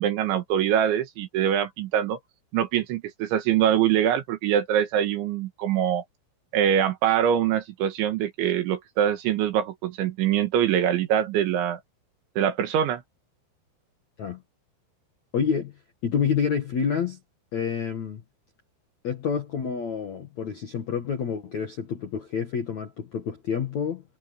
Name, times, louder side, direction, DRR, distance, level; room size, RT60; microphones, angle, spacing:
voice 1, 0.0-2.2 2.5-6.0 6.5-11.8 12.4-13.0, right 10 dB, 70° right, 3.8 m, -24 dB
voice 2, 15.3-15.7 16.0-17.2 17.5-18.2 19.0-24.0, left 7 dB, 60° left, 1.9 m, -28 dB
omnidirectional pair, 6.0 m